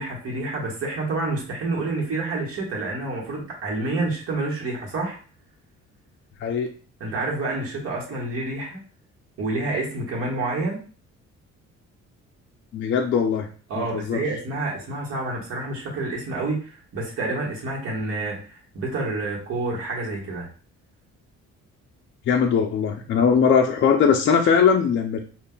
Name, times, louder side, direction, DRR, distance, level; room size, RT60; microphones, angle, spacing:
voice 1, 0.0-5.2 7.0-8.8 9.4-10.8 13.7-20.5, right 2 dB, 55° right, -3 dB, 1.3 m, -28 dB
voice 2, 12.7-13.5 13.8-14.2 22.3-25.2, left 6 dB, 45° left, 2 dB, 0.4 m, -20 dB
5.2 x 2.5 x 2.2 m, 0.39 s
cardioid pair, 150°, 29 cm